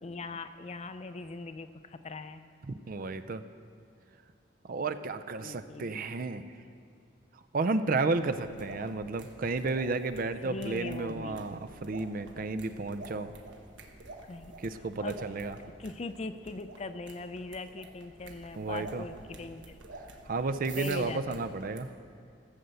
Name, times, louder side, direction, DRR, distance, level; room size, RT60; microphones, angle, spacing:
voice 1, 0.0-2.4 5.4-6.3 8.8-8.9 10.4-11.5 14.2-14.5 14.8-15.2 15.8-19.8 20.7-21.4, left 3 dB, 35° left, 11 dB, 0.5 m, -41 dB
voice 2, 2.9-3.4 4.6-6.5 7.5-13.3 14.6-15.5 18.6-19.0 20.2-21.9, right 3 dB, 50° right, 10 dB, 0.5 m, -32 dB
sound 1, 8.1-21.8, right 2 dB, 75° right, 1.3 m, -49 dB
15.0 x 6.8 x 7.8 m, 2.4 s
head